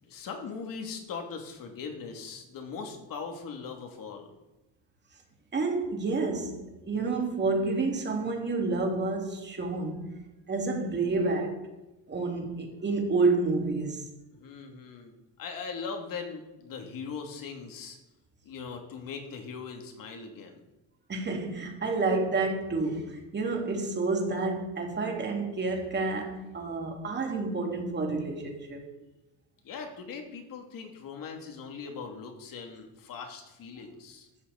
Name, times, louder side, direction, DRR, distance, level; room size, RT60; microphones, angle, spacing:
voice 1, 0.0-4.3 14.3-18.0 18.4-20.6 29.6-34.3, left 5 dB, 45° left, 2.7 m, -40 dB
voice 2, 5.5-10.1 10.5-11.7 12.1-14.1 21.1-28.8, right 3 dB, 25° right, 2.6 m, -29 dB
14.0 x 13.0 x 4.2 m
cardioid pair, 165°, 45 cm